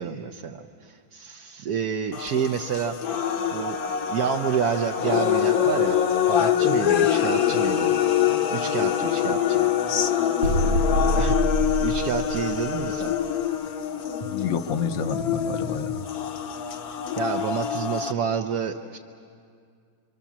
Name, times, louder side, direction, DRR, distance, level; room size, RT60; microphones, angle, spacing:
voice 1, 0.0-3.0 3.5-3.8 4.1-6.0 6.3-7.9 8.5-9.7 11.1-11.4 11.8-13.1 17.2-19.0, right 7 dB, 60° right, 4 dB, 1.1 m, -29 dB
sound 1, 2.1-18.1, left 9 dB, 55° left, 1.3 m, -25 dB
sound 2, 10.4-13.2, right 1 dB, 85° right, 1.6 m, -26 dB
voice 2, 14.2-16.1, left 6 dB, 75° left, 8 dB, 1.6 m, -29 dB
27.0 x 24.5 x 7.3 m, 2.3 s
omnidirectional pair, 2.1 m